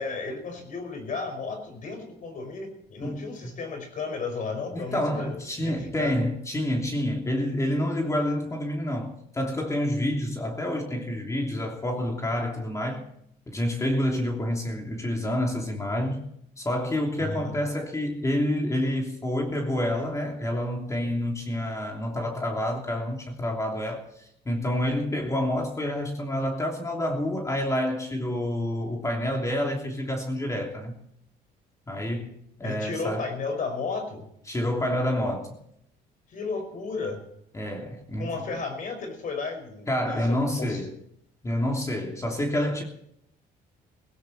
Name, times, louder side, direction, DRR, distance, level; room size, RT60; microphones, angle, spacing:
voice 1, 0.0-5.3 5.6-6.2 17.2-17.5 32.6-34.3 36.3-37.2 38.2-40.8, left 4 dB, 50° left, 5.2 m, -34 dB
voice 2, 3.0-3.3 4.7-13.0 13.5-16.3 16.6-31.0 31.9-32.3 32.6-33.3 34.5-35.5 37.5-38.6 39.9-41.0 41.4-42.8, left 1 dB, 20° left, 3.1 m, -28 dB
17.5 x 16.0 x 4.3 m
cardioid pair, 110°, 17 cm